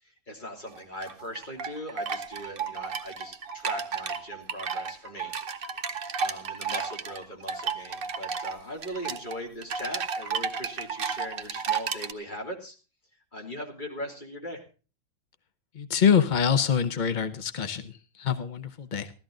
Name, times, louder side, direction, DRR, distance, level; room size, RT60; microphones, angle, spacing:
voice 1, 0.0-5.3 6.2-12.7 13.3-14.6, equal, 20° left, 1 dB, 3.2 m, -39 dB
sound 1, 0.7-12.1, right 6 dB, 70° right, 0.5 m, -33 dB
voice 2, 15.7-19.1, left 7 dB, 80° left, 12 dB, 0.4 m, -25 dB
15.5 x 13.0 x 3.7 m, 0.34 s
omnidirectional pair, 2.2 m